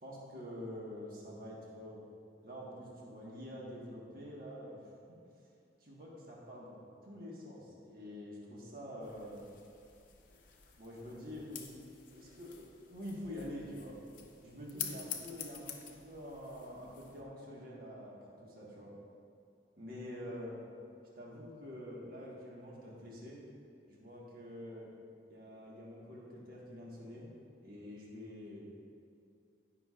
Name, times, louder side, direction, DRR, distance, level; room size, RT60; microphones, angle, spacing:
voice 1, 0.0-2.0 2.4-4.9 5.8-9.5 10.8-11.6 12.1-14.0 14.4-18.9 19.8-20.6 21.1-23.4 23.9-24.9 25.3-27.3 27.6-28.8, equal, 50° right, -4 dB, 1.6 m, -46 dB
sound 1, 9.0-17.2, left 8 dB, 45° left, 0.8 m, -48 dB
18.0 x 6.2 x 2.5 m, 2.5 s
head